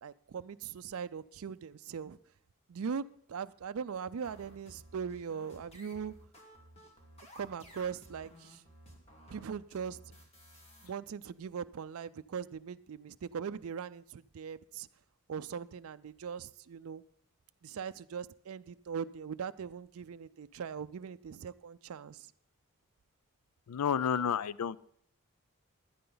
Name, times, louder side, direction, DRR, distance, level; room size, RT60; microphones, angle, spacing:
voice 1, 0.0-2.2 2.7-6.2 7.4-8.6 9.3-10.0 10.8-14.9 15.3-17.0 17.6-22.3, right 6 dB, 65° right, 12 dB, 0.4 m, -40 dB
sound 1, 4.2-10.9, equal, 30° left, 2.2 m, -55 dB
voice 2, 23.7-24.8, left 7 dB, 80° left, 19 dB, 0.4 m, -30 dB
16.0 x 11.0 x 3.9 m, 0.63 s
head